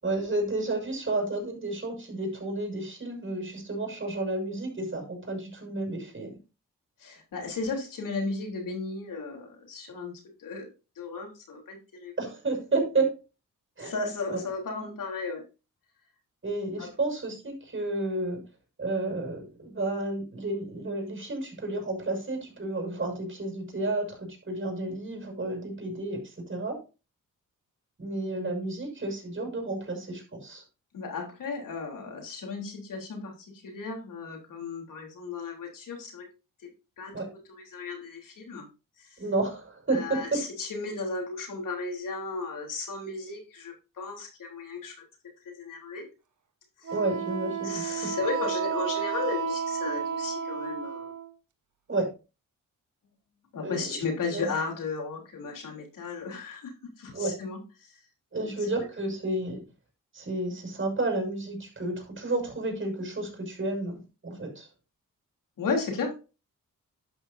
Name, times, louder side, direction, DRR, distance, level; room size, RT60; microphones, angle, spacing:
voice 1, 0.0-6.4 12.2-13.2 13.8-13.9 14.3-14.4 16.4-18.4 18.8-26.8 28.0-30.6 37.1-37.3 39.2-40.4 46.9-48.1 51.9-52.1 53.6-53.8 54.3-54.5 57.1-57.3 58.3-59.6 60.1-64.7, right 2 dB, 40° right, 3 dB, 6.1 m, -31 dB
voice 2, 7.0-10.7 11.0-12.1 13.8-15.4 16.8-16.9 30.9-36.3 37.0-38.6 39.0-39.2 39.9-45.0 45.6-46.1 46.8-46.9 47.6-51.1 53.5-58.0 58.4-58.5 65.6-66.2, left 4 dB, 80° left, 1 dB, 3.6 m, -35 dB
Wind instrument woodwind instrument, 46.9-51.3, right 7 dB, 65° right, 1.7 m, -32 dB
11.5 x 9.2 x 2.7 m, 0.30 s
cardioid pair, 75°, 32 cm